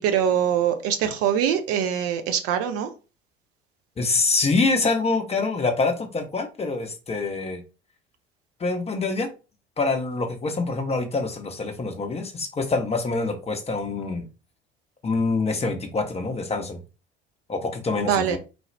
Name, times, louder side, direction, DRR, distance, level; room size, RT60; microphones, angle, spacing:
voice 1, 0.0-2.9 18.0-18.4, right 9 dB, 50° right, 0.7 m, -23 dB
voice 2, 4.0-7.6 8.6-9.3 9.8-14.3 15.0-16.8 17.5-18.4, left 3 dB, 20° left, 0.8 m, -25 dB
4.1 x 2.3 x 3.3 m
figure-of-eight pair, 60°, 30 cm